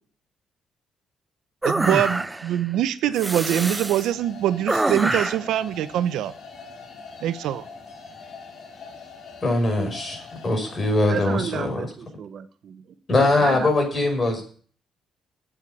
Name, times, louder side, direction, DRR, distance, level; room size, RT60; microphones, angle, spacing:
sound 1, 1.6-2.6 3.2-4.1 4.7-5.5, right 2 dB, 15° right, 0.5 m, -25 dB
voice 1, 1.6-6.3 7.2-7.6, right 11 dB, 85° right, 13 dB, 0.8 m, -24 dB
sound 2, 3.6-11.4, left 4 dB, 60° left, 4.8 m, -43 dB
voice 2, 9.4-11.9 13.1-14.4, left 2 dB, 35° left, 3 dB, 5.4 m, -22 dB
voice 3, 11.1-12.8 13.4-13.7, right 7 dB, 60° right, 11 dB, 1.0 m, -32 dB
8.7 x 8.1 x 6.9 m, 0.43 s
cardioid pair, 90°, 0 cm